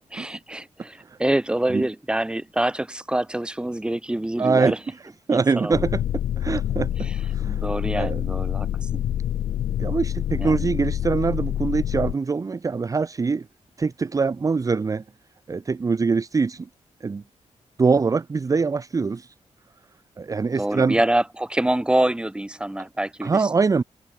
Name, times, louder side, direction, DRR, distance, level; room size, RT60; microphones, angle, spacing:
voice 1, 0.1-4.8 5.3-5.8 7.0-7.2 7.6-9.0 10.4-10.8 20.6-23.5, right 1 dB, 10° right, 1.9 m, -26 dB
voice 2, 4.4-4.9 5.3-6.0 6.4-7.6 8.0-8.2 9.8-13.5 13.8-15.0 15.5-16.7 17.0-17.2 17.8-19.3 20.2-21.0 23.2-23.8, right 4 dB, 30° right, 0.8 m, -23 dB
sound 1, 5.7-12.1, left 11 dB, 80° left, 0.4 m, -26 dB
open air
wide cardioid pair, 145°, 12 cm